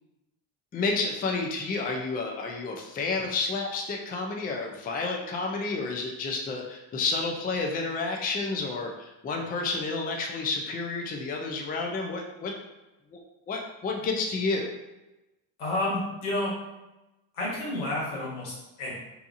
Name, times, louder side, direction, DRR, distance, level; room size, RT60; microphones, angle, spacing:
voice 1, 0.7-12.5 13.1-13.2 13.5-14.7, left 3 dB, 20° left, 1 dB, 0.4 m, -30 dB
voice 2, 15.6-16.5 17.3-18.9, left 1 dB, 85° left, -5 dB, 1.2 m, -30 dB
2.8 x 2.3 x 2.5 m, 1.0 s
supercardioid pair, 80°, 49 cm